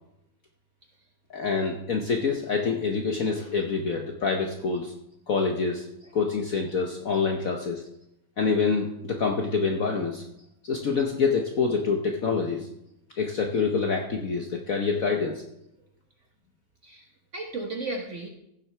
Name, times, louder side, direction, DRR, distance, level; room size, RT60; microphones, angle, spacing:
voice 1, 1.3-4.9 5.3-5.8 6.1-7.8 8.4-10.2 10.6-12.7 13.2-15.4, left 5 dB, 55° left, 2 dB, 1.0 m, -26 dB
voice 2, 16.8-18.3, right 2 dB, 45° right, 2 dB, 1.1 m, -35 dB
16.0 x 7.5 x 3.3 m, 0.82 s
omnidirectional pair, 2.3 m